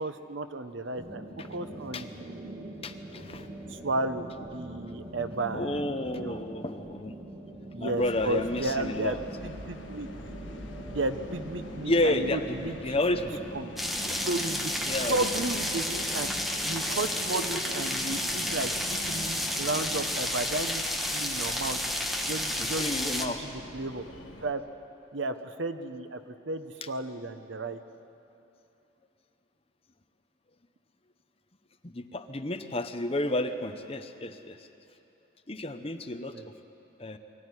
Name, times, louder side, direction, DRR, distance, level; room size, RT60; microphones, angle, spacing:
voice 1, 0.0-2.8 3.7-6.4 7.7-9.2 9.4-10.1 10.9-13.0 13.5-13.7 14.2-16.3 16.6-20.8 21.1-21.8 22.2-24.0 24.4-24.6 25.1-27.8 36.2-36.5, right 2 dB, 70° right, 9 dB, 1.0 m, -34 dB
sound 1, 1.0-20.2, right 1 dB, 25° right, 2.0 m, -44 dB
voice 2, 2.8-3.5 5.5-7.2 7.8-9.2 11.9-12.6 12.8-13.4 14.1-14.2 14.9-15.2 22.6-23.4 31.8-34.7 35.5-36.4 37.0-37.2, left 1 dB, 30° left, 8 dB, 0.8 m, -31 dB
sound 2, 8.0-24.5, left 1 dB, 70° left, 1.7 m, -45 dB
sound 3, 13.8-23.3, left 1 dB, ahead, 1.2 m, -31 dB
23.0 x 14.5 x 9.8 m, 2.9 s
head